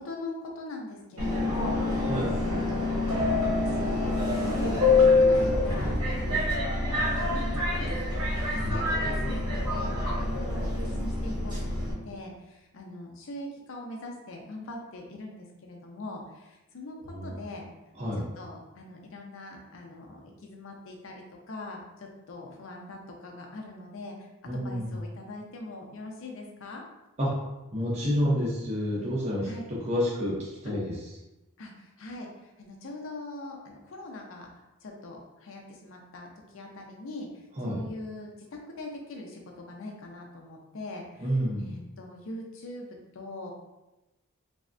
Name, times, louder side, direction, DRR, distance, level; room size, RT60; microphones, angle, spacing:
voice 1, 0.0-2.1 2.4-6.8 7.1-17.7 18.1-26.8 28.0-28.3 29.4-29.6 30.6-30.9 31.6-34.5 34.8-36.3 36.5-41.3 41.6-42.9 43.1-43.5, left 2 dB, 60° left, 1 dB, 0.5 m, -42 dB
Subway metro underground, 1.2-11.9, left 2 dB, 90° right, 1.1 m, -26 dB
voice 2, 17.1-17.4 18.0-18.2 24.5-25.0 27.2-27.4 27.7-30.9 37.6-37.8 41.2-41.7, equal, 30° right, -5 dB, 0.6 m, -29 dB
3.2 x 2.0 x 2.5 m, 1.0 s
head